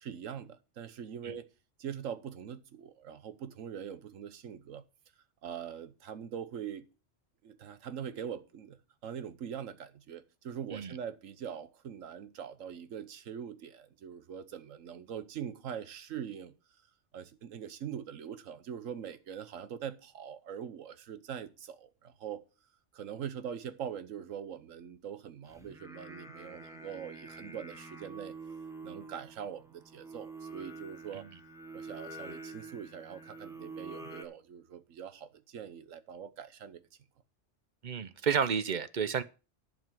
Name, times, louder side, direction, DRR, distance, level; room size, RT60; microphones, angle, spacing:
voice 1, 0.0-1.5 1.8-4.8 5.4-6.9 7.4-16.5 17.1-22.4 22.9-28.3 28.8-31.3 31.7-36.8, right 8 dB, 85° right, 1.3 m, -42 dB
Singing, 25.5-34.2, right 3 dB, 5° right, 1.4 m, -47 dB
voice 2, 37.8-39.2, right 7 dB, 50° right, 0.6 m, -31 dB
11.0 x 5.4 x 7.4 m
omnidirectional pair, 1.3 m